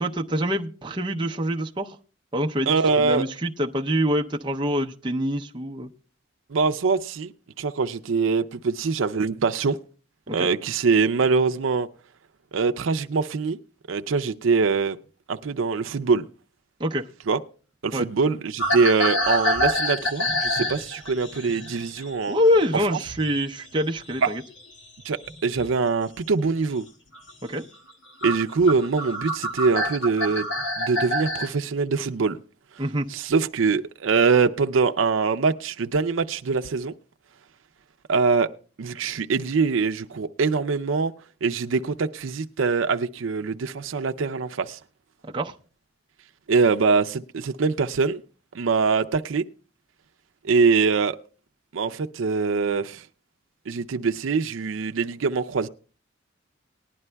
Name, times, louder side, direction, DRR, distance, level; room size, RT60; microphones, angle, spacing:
voice 1, 0.0-2.0 2.3-5.9 10.3-10.5 16.8-17.1 17.9-18.1 22.3-24.4 27.4-27.7 32.8-33.1 45.3-45.5, equal, 25° right, 0.6 m, -25 dB
voice 2, 2.7-3.2 6.5-7.3 7.6-9.8 10.3-11.9 12.5-13.6 13.9-15.0 15.3-16.2 17.3-17.4 17.8-22.4 24.2-24.3 25.0-26.8 28.2-30.5 30.8-32.4 33.1-36.9 38.1-38.5 38.8-41.1 41.4-44.8 46.5-48.2 48.5-49.4 50.4-51.2 51.7-53.0 53.7-55.7, right 4 dB, 80° right, 0.5 m, -23 dB
sound 1, 18.6-23.4 23.7-25.8 26.3-26.7 27.1-27.3 27.9-28.0 28.2-31.5, equal, 70° left, 2.0 m, -27 dB
19.5 x 11.0 x 2.2 m
head